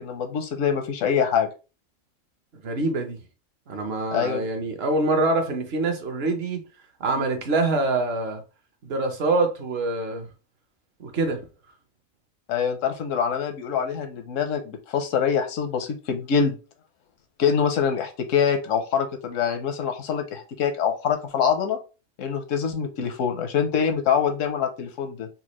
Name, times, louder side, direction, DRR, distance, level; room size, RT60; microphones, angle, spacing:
voice 1, 0.0-1.5 4.1-4.4 12.5-16.6 17.4-21.8 22.2-25.3, left 7 dB, 85° left, 1.1 m, -24 dB
voice 2, 2.5-3.2 3.7-6.6 7.0-8.4 8.8-10.3 11.0-11.4, right 2 dB, 60° right, 1.0 m, -25 dB
4.1 x 2.3 x 3.0 m
omnidirectional pair, 1.3 m